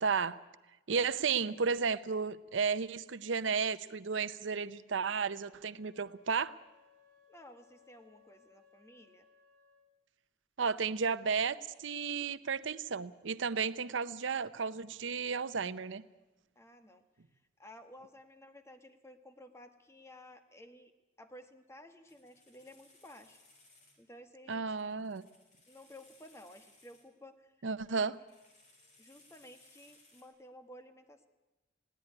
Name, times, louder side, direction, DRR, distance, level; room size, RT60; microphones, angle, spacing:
voice 1, 0.0-0.4 0.9-6.5 10.6-16.0 24.5-25.2 27.6-28.2, right 5 dB, 85° right, 15 dB, 0.7 m, -33 dB
Wind instrument woodwind instrument, 5.4-9.9, left 5 dB, 55° right, 4.5 m, -66 dB
voice 2, 7.3-9.3 16.5-17.0 17.3-20.9 21.2-23.4 24.0-24.9 25.7-27.7 28.0-28.1 29.0-31.3, left 1 dB, 15° left, 8 dB, 1.2 m, -54 dB
sound 1, 22.1-24.0 24.8-27.0 28.0-30.2, left 2 dB, 40° left, 4.6 m, -64 dB
20.5 x 16.5 x 9.6 m, 1.1 s
head